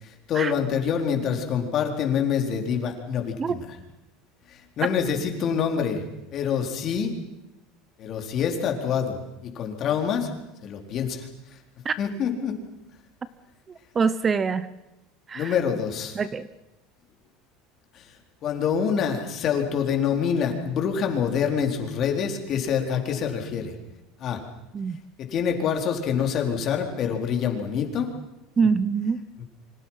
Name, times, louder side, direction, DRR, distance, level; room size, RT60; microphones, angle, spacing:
voice 1, 0.0-3.6 4.5-6.0 6.3-7.2 8.0-10.3 10.6-11.3 12.0-12.6 15.3-16.2 17.9-18.1 18.4-23.8 24.2-24.4 25.2-28.1 29.4-29.5, left 7 dB, 40° left, 3 dB, 4.0 m, -26 dB
voice 2, 13.9-14.7 15.3-15.5 16.2-16.4 24.7-25.0 28.6-29.2, right 5 dB, 20° right, 15 dB, 0.9 m, -24 dB
28.5 x 25.5 x 5.8 m, 0.95 s
cardioid pair, 150°, 0 cm